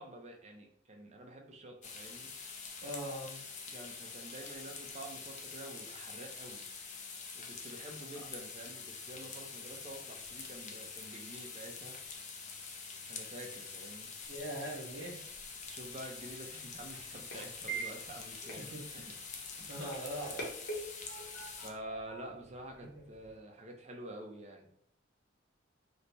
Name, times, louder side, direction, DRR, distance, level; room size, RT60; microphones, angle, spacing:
voice 1, 0.0-2.3 3.7-6.6 7.3-12.0 13.1-14.1 15.7-19.1 19.6-19.8 21.6-24.7, right 1 dB, 35° right, 2 dB, 0.6 m, -48 dB
sound 1, 1.8-21.7, left 5 dB, 40° left, 0.5 m, -46 dB
voice 2, 2.8-3.4 14.3-15.2 18.6-18.8 19.7-20.4 22.8-22.9, right 1 dB, 85° right, -4 dB, 1.1 m, -41 dB
sound 2, 15.5-23.4, right 3 dB, 55° left, 0.9 m, -46 dB
3.2 x 2.1 x 4.0 m, 0.69 s
head